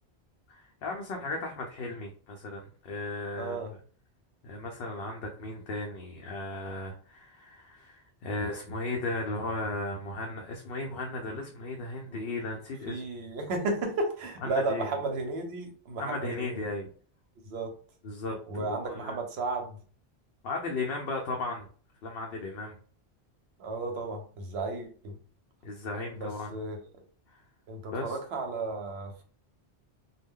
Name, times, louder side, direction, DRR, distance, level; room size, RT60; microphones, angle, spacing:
voice 1, 0.5-3.6 4.4-13.0 14.5-14.9 16.0-16.9 18.0-19.2 20.4-21.7 22.0-22.8 25.6-26.5 27.3-27.4 27.9-28.2, left 2 dB, 70° left, 1 dB, 0.7 m, -36 dB
voice 2, 3.4-3.7 12.1-12.2 12.9-16.6 17.4-17.7 18.5-19.8 23.6-25.2 26.2-26.8 27.7-29.2, right 2 dB, 75° right, 3 dB, 0.9 m, -33 dB
2.1 x 2.1 x 3.5 m, 0.42 s
omnidirectional pair, 1.1 m